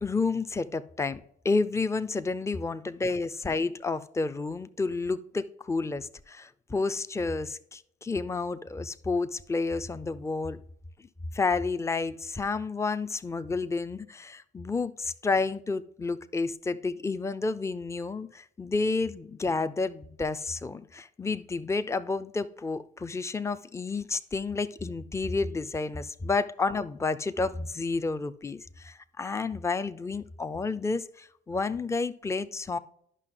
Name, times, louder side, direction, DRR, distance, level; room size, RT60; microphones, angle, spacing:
voice 1, 0.0-10.6 11.3-32.8, left 3 dB, 15° left, 12 dB, 0.6 m, -30 dB
10.5 x 5.9 x 3.8 m, 0.68 s
hypercardioid pair, 60°, 20 cm